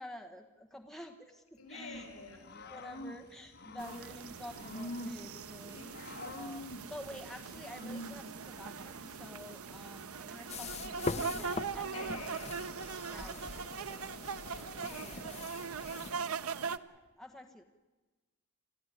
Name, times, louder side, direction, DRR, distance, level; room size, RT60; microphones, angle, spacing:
voice 1, 0.0-1.4 1.7-2.2 2.6-5.9 6.4-6.6 6.9-12.4 13.0-14.2 14.5-15.4 16.9-17.6, left 1 dB, ahead, 3 dB, 1.3 m, -49 dB
voice 2, 1.6-2.5 5.7-6.5 11.9-12.6 14.8-15.1 15.9-16.3, left 3 dB, 80° left, 5 dB, 7.6 m, -49 dB
Growling / Cricket, 1.7-12.6, left 1 dB, 50° left, 2.1 m, -48 dB
sound 1, 3.8-16.8, right 5 dB, 75° right, 0.8 m, -41 dB
sound 2, 10.5-16.1, left 3 dB, 30° left, 0.9 m, -42 dB
28.5 x 14.0 x 10.0 m, 1.2 s
head